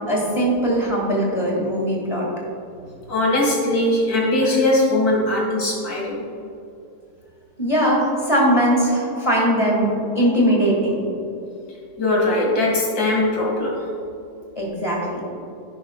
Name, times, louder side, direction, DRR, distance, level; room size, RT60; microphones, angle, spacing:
voice 1, 0.1-2.3 7.6-11.0 14.6-15.2, equal, 20° left, -3 dB, 2.2 m, -20 dB
voice 2, 3.1-6.3 9.1-9.2 12.0-13.8, left 1 dB, 90° left, -3 dB, 2.9 m, -20 dB
10.5 x 10.5 x 2.4 m, 2.7 s
omnidirectional pair, 1.7 m